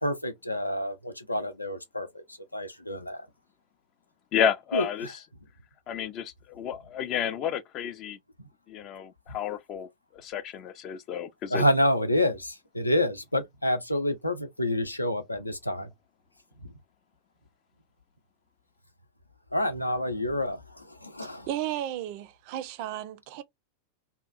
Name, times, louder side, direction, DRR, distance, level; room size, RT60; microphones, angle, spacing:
voice 1, 0.0-3.3 4.7-5.1 8.4-8.5 9.3-9.4 11.5-15.9 16.6-16.8 19.5-21.5, left 1 dB, 85° left, 0.6 m, -28 dB
voice 2, 4.3-5.1 5.9-8.2 8.7-11.6, left 8 dB, 35° left, 0.4 m, -31 dB
voice 3, 21.5-23.4, right 12 dB, 45° right, 0.4 m, -34 dB
2.8 x 2.3 x 2.5 m
figure-of-eight pair, 90°, 0 cm